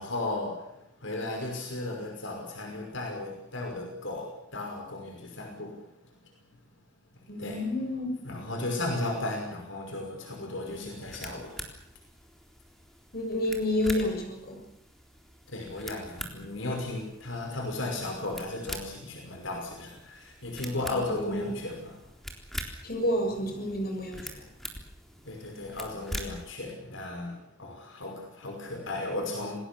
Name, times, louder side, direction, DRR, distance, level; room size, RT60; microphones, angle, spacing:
voice 1, 0.0-6.2 7.4-7.6 8.2-11.7 15.5-22.0 25.2-29.6, left 2 dB, 70° left, 5.7 m, -35 dB
voice 2, 7.3-8.5 13.1-14.6 21.1-21.5 22.8-24.5, left 1 dB, 50° left, 7.0 m, -30 dB
sound 1, 10.7-26.5, equal, ahead, 3.8 m, -44 dB
28.0 x 20.0 x 7.1 m
head